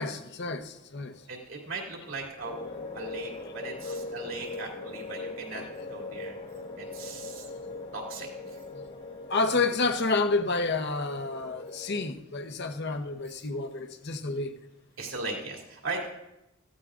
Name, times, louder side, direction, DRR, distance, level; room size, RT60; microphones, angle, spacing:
voice 1, 0.0-1.2 3.8-3.9 5.5-5.7 9.3-14.5, left 3 dB, 55° left, 0.8 m, -29 dB
voice 2, 1.3-2.6 2.9-5.6 5.9-6.4 6.8-7.5 7.9-8.6 15.0-16.1, right 3 dB, 70° right, 2.8 m, -38 dB
sound 1, 2.4-12.1, left 3 dB, 35° left, 1.3 m, -40 dB
15.5 x 15.0 x 2.5 m
head